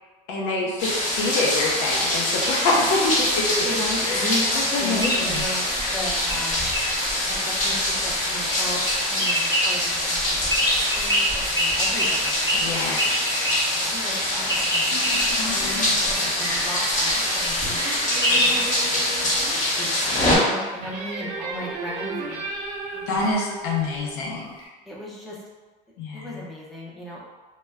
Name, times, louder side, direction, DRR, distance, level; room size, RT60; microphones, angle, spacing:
voice 1, 0.3-3.6 4.1-4.3 4.7-5.1 12.5-12.9 14.9-15.9 16.2-16.6 23.1-24.5 26.0-26.3, left 2 dB, 85° left, -1 dB, 0.6 m, -26 dB
sound 1, 0.8-20.4, left 1 dB, 40° left, 1.2 m, -24 dB
voice 2, 3.6-5.6 5.9-6.7 7.3-10.5 10.8-13.0 13.7-17.5 18.3-19.3 19.7-22.4 22.9-23.3 24.8-25.4 26.1-27.2, left 1 dB, ahead, -6 dB, 0.6 m, -36 dB
sound 2, 5.0-8.1 8.4-9.6 10.1-13.6 14.5-18.8 24.6-24.7, equal, 20° left, 0.9 m, -26 dB
sound 3, 15.6-17.0 17.6-19.6 20.8-24.3, right 3 dB, 65° right, 0.7 m, -35 dB
2.1 x 2.1 x 3.4 m, 1.3 s
supercardioid pair, 105°, 20 cm